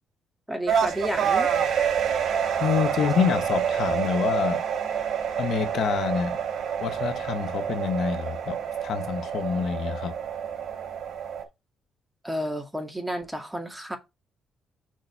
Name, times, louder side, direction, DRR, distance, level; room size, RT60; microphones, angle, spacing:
voice 1, 0.5-1.5 12.2-14.0, equal, 5° right, 2.1 m, -31 dB
sound 1, 0.7-11.4, right 8 dB, 60° right, 3.1 m, -27 dB
voice 2, 2.6-4.6 5.4-6.4 6.8-10.1, left 7 dB, 70° left, 1.1 m, -27 dB
6.5 x 4.1 x 5.5 m
cardioid pair, 90°, 0 cm